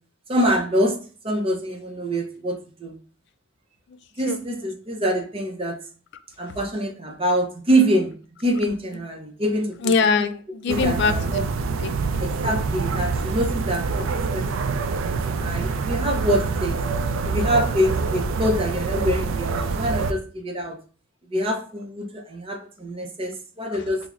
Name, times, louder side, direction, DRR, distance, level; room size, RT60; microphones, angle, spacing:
voice 1, 0.3-1.0 1.2-3.0 4.2-5.8 6.4-8.1 8.4-9.7 10.7-11.4 12.2-16.7 17.2-20.8 21.3-24.0, equal, 25° right, 2 dB, 0.6 m, -25 dB
voice 2, 9.8-11.1 11.8-12.2 23.7-23.8, left 5 dB, 55° left, 10 dB, 0.4 m, -23 dB
sound 1, 10.7-20.1, right 4 dB, 75° right, 0.3 m, -26 dB
5.5 x 2.0 x 2.4 m, 0.39 s
head